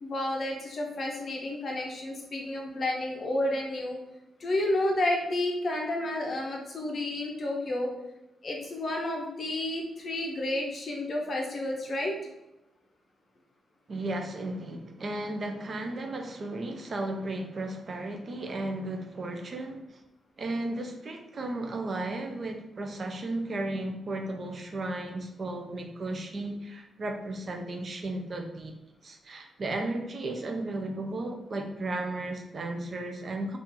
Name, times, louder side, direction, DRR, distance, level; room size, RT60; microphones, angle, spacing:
voice 1, 0.0-4.0 4.4-7.9 8.4-12.1, left 1 dB, 40° left, 0 dB, 0.6 m, -31 dB
voice 2, 13.9-20.0 20.4-33.6, right 2 dB, 35° right, 4 dB, 0.4 m, -34 dB
2.8 x 2.4 x 3.6 m, 0.92 s
wide cardioid pair, 165°, 0 cm